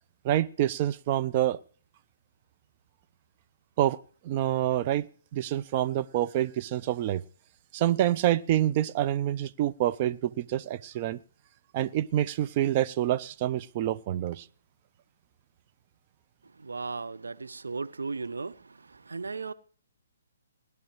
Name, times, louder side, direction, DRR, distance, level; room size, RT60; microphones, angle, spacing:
voice 1, 0.2-1.6 3.8-4.0 4.2-5.1 5.3-7.2 7.7-11.2 11.7-14.4, right 12 dB, 35° right, 0.5 m, -27 dB
voice 2, 16.6-18.6 19.1-19.5, right 4 dB, 75° right, 0.6 m, -35 dB
19.5 x 10.5 x 3.1 m
figure-of-eight pair, 135°, 0 cm